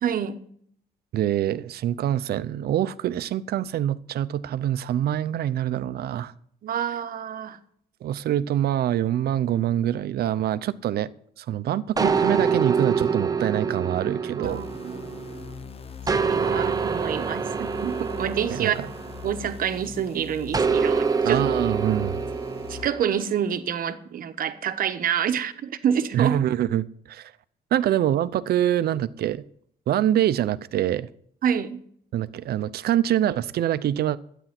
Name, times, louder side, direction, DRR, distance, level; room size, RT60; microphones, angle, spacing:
voice 1, 0.0-0.4 6.6-7.6 14.3-15.1 16.2-18.9 19.2-21.4 22.7-26.4 31.4-31.8, right 8 dB, 60° right, 1.0 m, -27 dB
voice 2, 1.1-6.3 8.0-11.1 11.4-14.6 18.5-18.7 21.2-22.2 26.1-27.3 27.7-29.4 29.9-31.1 32.1-34.2, right 11 dB, 75° right, 0.6 m, -25 dB
sound 1, 12.0-15.5 16.1-19.8 20.5-23.2, right 5 dB, 20° right, 0.7 m, -26 dB
sound 2, 14.4-22.9, left 6 dB, 35° left, 0.8 m, -40 dB
12.5 x 9.1 x 5.9 m
cardioid pair, 145°, 16 cm